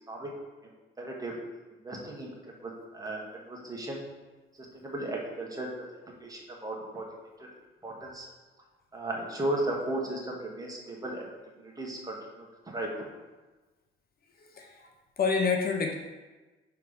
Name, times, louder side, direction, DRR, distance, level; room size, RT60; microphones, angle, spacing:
voice 1, 1.0-1.3 1.8-2.3 2.6-3.2 3.5-4.0 4.7-5.8 6.2-7.0 7.4-7.5 7.8-8.3 8.9-11.3 11.6-12.4 12.7-13.1, right 1 dB, 20° right, -2 dB, 1.5 m, -35 dB
voice 2, 14.5-14.9 15.2-15.9, left 5 dB, 50° left, 2 dB, 0.8 m, -27 dB
5.7 x 3.4 x 5.2 m, 1.2 s
cardioid pair, 90°, 20 cm